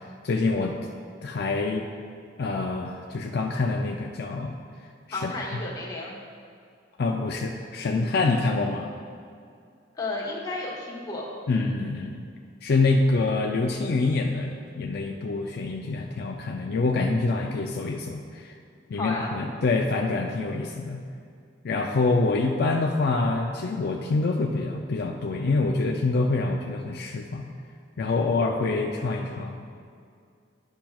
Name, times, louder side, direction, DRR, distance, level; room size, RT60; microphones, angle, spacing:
voice 1, 0.2-0.8 1.2-1.9 2.4-4.5 5.1-5.3 7.0-8.9 11.5-12.2 12.6-18.5 18.9-21.0 21.6-27.5 28.0-29.6, left 3 dB, 60° left, 1 dB, 0.4 m, -26 dB
voice 2, 5.1-6.2 9.9-11.2 18.9-19.4, left 2 dB, 20° left, -4 dB, 1.2 m, -32 dB
10.0 x 5.8 x 2.3 m, 2.3 s
head